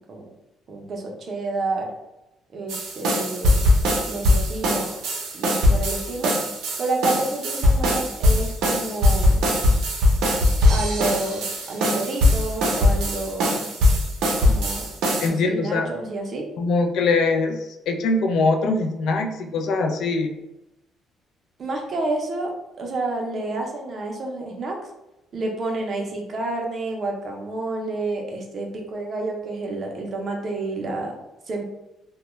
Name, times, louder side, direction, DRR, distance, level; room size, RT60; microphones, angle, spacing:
voice 1, 0.7-1.9 2.5-3.7 4.1-5.0 5.3-6.3 6.8-9.5 10.7-13.7 14.4-14.9 15.2-16.5 21.6-22.5 22.8-24.8 25.3-31.1 31.5-31.6, right 2 dB, 35° right, 1 dB, 0.5 m, -29 dB
sound 1, 2.7-15.3, left 1 dB, 85° right, 0.5 m, -21 dB
voice 2, 15.2-15.9 16.6-17.6 17.9-20.4, left 3 dB, 65° left, 4 dB, 0.3 m, -22 dB
2.2 x 2.0 x 3.0 m, 0.94 s
cardioid pair, 155°, 0 cm